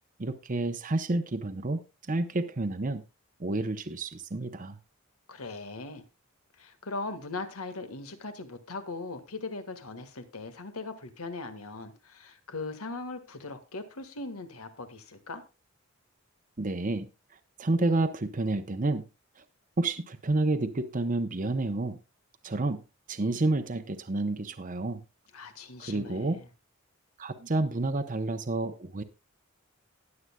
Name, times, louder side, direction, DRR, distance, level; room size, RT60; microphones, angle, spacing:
voice 1, 0.2-1.8 2.1-3.0 3.4-4.8 16.6-17.1 17.6-19.1 19.8-22.0 22.4-22.8 23.1-25.0 25.8-26.4 27.2-29.0, right 2 dB, 40° right, 8 dB, 0.7 m, -29 dB
voice 2, 5.3-6.0 6.6-15.4 25.3-26.5, left 3 dB, 90° left, 9 dB, 1.6 m, -39 dB
19.0 x 7.8 x 2.3 m, 0.27 s
head